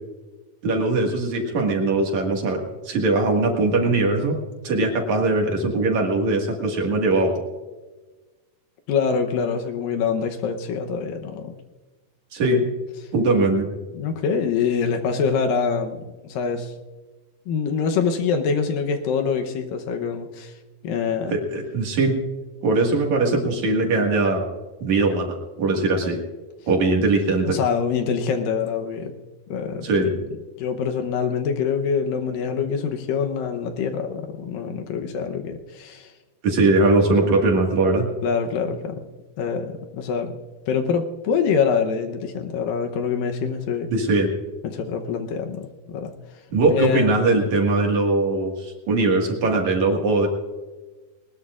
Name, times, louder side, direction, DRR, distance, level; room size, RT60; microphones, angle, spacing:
voice 1, 0.6-4.4 4.6-7.4 12.3-12.7 13.1-13.7 21.3-22.2 22.6-24.5 24.8-26.2 26.7-27.6 29.8-30.1 36.4-38.1 43.9-44.3 46.5-50.3, right 2 dB, 55° right, 1 dB, 2.9 m, -21 dB
voice 2, 8.9-11.5 12.4-12.6 13.9-16.7 17.5-20.5 20.8-21.4 27.5-29.1 29.5-30.1 30.6-36.1 38.2-38.9 39.4-40.3 40.7-43.9 44.6-46.1 46.7-47.1, left 6 dB, 75° left, 5 dB, 2.5 m, -25 dB
21.5 x 20.0 x 2.5 m, 1.3 s
omnidirectional pair, 4.3 m